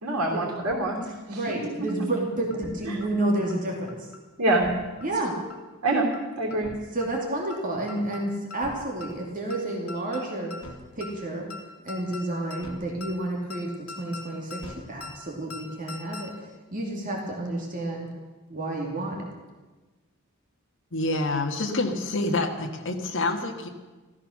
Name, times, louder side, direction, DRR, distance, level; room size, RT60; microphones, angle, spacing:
voice 1, 0.0-1.4 2.8-3.0 4.4-4.6 5.8-6.1 6.4-6.7, right 2 dB, 80° right, -2 dB, 3.1 m, -25 dB
sound 1, 0.7-0.8 1.0-1.1 1.5-1.6 1.9-2.2 2.5-2.7 3.0-3.1 3.5-3.6 3.9-4.2 4.5-4.7 5.0-5.1 5.5-5.6 5.9-6.2 6.5-6.7 7.0-7.1 7.5-7.6 7.9-8.2 8.5-8.7 9.0-9.1 9.5-9.6 9.9-10.2 10.5-10.7 11.0-11.1 11.5-11.6 11.9-12.2 12.5-12.7 13.0-13.1 13.5-13.6 13.9-14.2 14.5-14.7 15.0-15.1 15.5-15.6 15.9-16.2, left 3 dB, 75° left, 2.3 m, -40 dB
voice 2, 1.3-4.1 5.0-5.4 6.9-10.5 10.9-11.5 11.8-18.1 18.5-19.3, right 1 dB, 35° right, -1 dB, 2.6 m, -30 dB
voice 3, 20.9-23.7, left 2 dB, 55° left, 2 dB, 1.7 m, -27 dB
14.5 x 14.0 x 6.5 m, 1.2 s
head